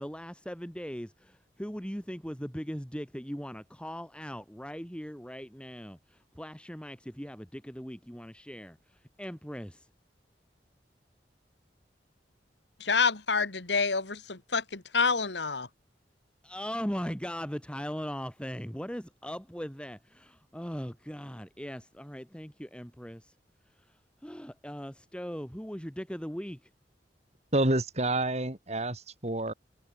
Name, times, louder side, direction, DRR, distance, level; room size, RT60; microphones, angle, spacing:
voice 1, 0.0-8.8 9.2-9.9 16.4-23.3 24.2-26.6, equal, 5° left, 7.9 m, -39 dB
voice 2, 12.8-15.7, left 5 dB, 90° left, 2.3 m, -28 dB
voice 3, 27.5-29.5, right 2 dB, 40° right, 4.2 m, -28 dB
head